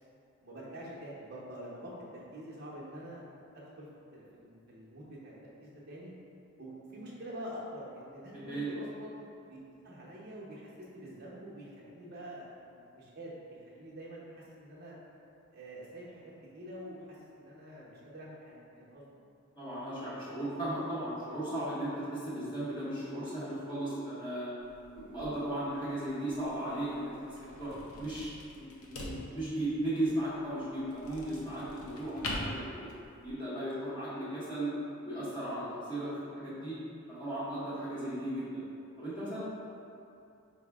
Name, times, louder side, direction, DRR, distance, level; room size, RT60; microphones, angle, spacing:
voice 1, 0.4-3.2 3.5-3.9 4.1-6.1 6.6-9.6 9.8-15.0 15.5-19.1 36.4-36.5, equal, 45° right, -6 dB, 0.8 m, -46 dB
voice 2, 8.3-8.7 19.6-24.5 24.9-27.7 28.0-28.3 28.6-34.7 35.0-36.7 37.1-38.6 39.0-39.4, right 1 dB, 20° left, -12 dB, 0.9 m, -36 dB
sound 1, 24.6-33.3, left 1 dB, 85° left, 0.6 m, -44 dB
5.4 x 2.1 x 3.4 m, 2.6 s
head